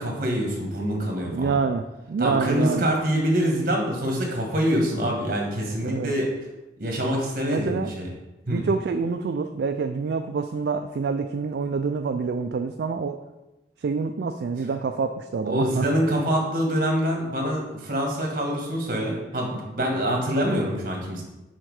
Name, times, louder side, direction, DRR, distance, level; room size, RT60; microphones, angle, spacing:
voice 1, 0.0-1.5 2.2-6.3 6.8-8.1 8.5-8.6 15.4-21.2, equal, 50° right, 1 dB, 1.5 m, -25 dB
voice 2, 1.3-2.9 5.0-5.2 5.8-6.1 7.5-7.9 8.5-13.2 13.8-15.8, right 4 dB, 65° right, 7 dB, 0.3 m, -27 dB
6.4 x 4.3 x 4.8 m, 1.0 s
head